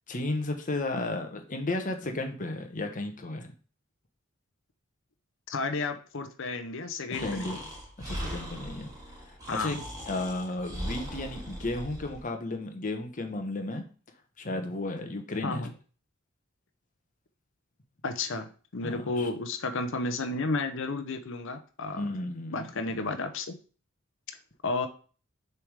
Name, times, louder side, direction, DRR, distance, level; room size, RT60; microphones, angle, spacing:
voice 1, 0.1-3.5 7.2-7.6 8.0-8.9 9.5-9.8 10.1-13.8 14.4-15.7 18.8-19.3 22.0-22.8, left 2 dB, 40° left, 5 dB, 1.0 m, -33 dB
voice 2, 5.5-7.6 9.5-9.8 15.4-15.7 18.0-22.1 22.5-23.5 24.6-24.9, left 3 dB, 65° left, 8 dB, 0.8 m, -32 dB
Breathing, 7.1-12.2, equal, 15° right, 1.8 m, -39 dB
6.8 x 3.5 x 4.8 m, 0.39 s
head